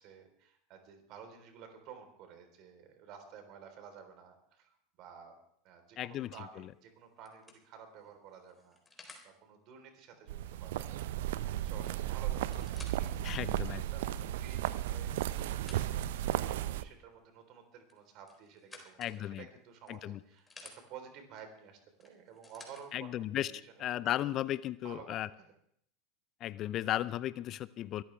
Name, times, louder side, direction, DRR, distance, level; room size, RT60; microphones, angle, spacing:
voice 1, 0.0-5.4 5.6-24.1 24.8-25.5, right 7 dB, 50° right, 6 dB, 3.8 m, -53 dB
voice 2, 6.0-6.3 13.2-13.8 19.0-19.4 19.9-20.2 22.9-23.5 23.8-25.3 26.4-28.0, left 13 dB, 45° left, 19 dB, 0.5 m, -35 dB
sound 1, 6.6-6.7 7.2-9.3 11.3-11.4 11.7-11.8 12.3-13.1 13.7-13.8 14.6-16.2 17.8-19.2 19.9-20.8 22.0-22.8 23.8-23.9, left 3 dB, 15° left, 3.8 m, -55 dB
sound 2, 10.3-16.8, right 13 dB, 65° right, 0.6 m, -35 dB
23.0 x 13.5 x 3.4 m, 0.66 s
hypercardioid pair, 80°, 0 cm